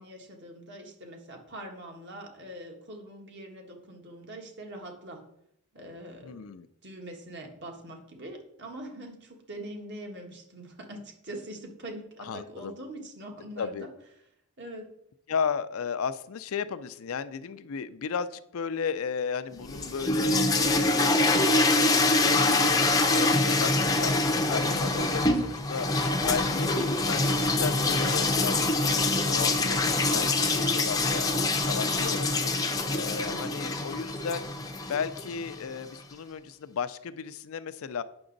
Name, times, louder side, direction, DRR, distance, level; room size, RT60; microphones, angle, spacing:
voice 1, 0.0-5.2 5.7-6.4 6.8-13.9 14.6-14.9 33.2-33.8, right 1 dB, 50° right, 2 dB, 1.5 m, -43 dB
voice 2, 6.2-6.7 12.2-12.8 13.6-13.9 15.3-22.8 23.1-25.9 26.2-31.3 31.7-32.6 32.9-34.5 34.9-38.0, left 6 dB, 65° left, 13 dB, 0.4 m, -34 dB
sound 1, 19.6-35.6, left 2 dB, 15° left, 0.6 m, -25 dB
8.7 x 6.0 x 3.9 m, 0.75 s
head